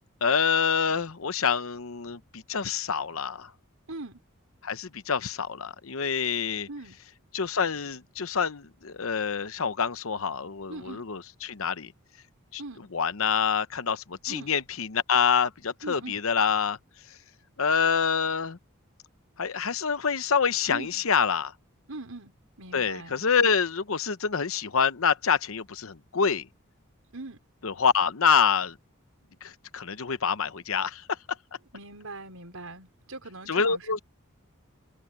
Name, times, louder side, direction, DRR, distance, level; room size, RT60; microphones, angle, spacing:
voice 1, 0.2-3.5 4.6-6.7 7.3-11.9 12.5-16.8 17.1-17.2 17.6-18.6 19.4-21.5 22.7-26.5 27.6-28.8 29.4-31.2 33.5-34.0, left 6 dB, 75° left, 0.9 m, -26 dB
voice 2, 3.9-4.2 6.7-7.0 10.7-11.0 12.6-12.9 14.3-14.5 15.8-16.2 20.7-20.9 21.9-22.3 22.6-23.2 27.1-27.4 31.7-34.0, right 2 dB, 80° right, 5.0 m, -41 dB
head